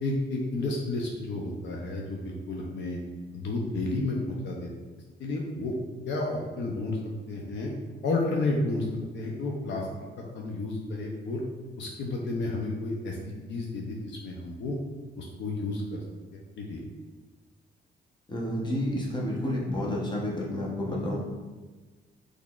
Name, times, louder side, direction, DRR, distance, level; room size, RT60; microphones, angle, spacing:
voice 1, 0.0-3.0 3.3-4.7 5.2-5.7 6.1-7.0 7.3-7.7 8.0-9.9 10.3-11.4 11.8-14.8 15.2-16.0 16.3-16.8, left 2 dB, 65° left, -1 dB, 0.6 m, -31 dB
voice 2, 18.3-21.2, left 1 dB, 20° left, -3 dB, 0.9 m, -30 dB
3.7 x 3.2 x 2.4 m, 1.3 s
cardioid pair, 90°, 20 cm